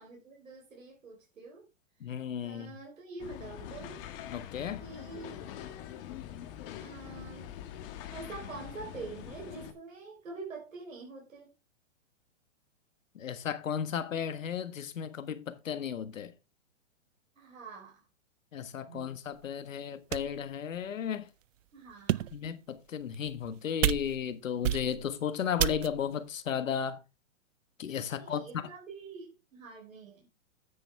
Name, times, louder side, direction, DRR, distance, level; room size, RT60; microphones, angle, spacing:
voice 1, 0.0-1.7 2.4-4.0 4.8-5.4 6.8-7.6 8.1-11.5 17.4-18.0 18.8-19.1 21.7-22.3 28.1-30.3, right 4 dB, 90° right, 4.1 m, -46 dB
voice 2, 2.0-2.7 4.3-4.8 13.1-16.3 18.5-21.3 22.3-27.0 27.8-28.7, left 8 dB, 80° left, 1.5 m, -34 dB
sound 1, 3.2-9.7, left 10 dB, 45° left, 1.9 m, -44 dB
sound 2, 19.4-19.5 20.1-20.5 21.1-21.2 21.9-22.5 23.1-23.5 23.8-24.3 24.6-25.2 25.6-26.1, right 13 dB, 75° right, 0.6 m, -31 dB
9.4 x 8.7 x 3.4 m
hypercardioid pair, 130°, 39 cm